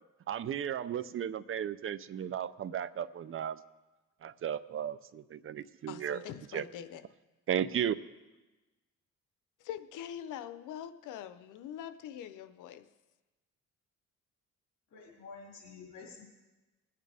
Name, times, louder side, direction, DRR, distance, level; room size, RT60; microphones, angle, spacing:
voice 1, 0.3-3.6 4.2-6.2 6.5-6.7 7.5-8.0, right 9 dB, 45° right, 15 dB, 0.6 m, -35 dB
voice 2, 5.9-7.0 9.6-12.8, left 10 dB, 85° left, 12 dB, 0.8 m, -43 dB
voice 3, 14.9-16.3, left 4 dB, 65° left, -4 dB, 2.8 m, -49 dB
21.0 x 8.7 x 3.5 m, 1.1 s
cardioid pair, 90°, 30 cm